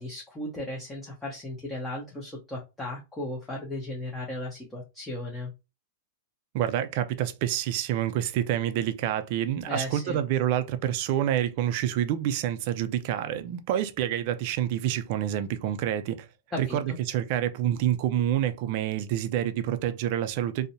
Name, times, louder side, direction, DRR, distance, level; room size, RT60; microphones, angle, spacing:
voice 1, 0.0-5.5 9.6-10.2 16.5-17.0, left 1 dB, 10° left, 0.6 m, -36 dB
voice 2, 6.5-16.3 16.6-20.7, right 11 dB, 50° right, 0.4 m, -27 dB
2.6 x 2.0 x 2.6 m
hypercardioid pair, 140°, 0 cm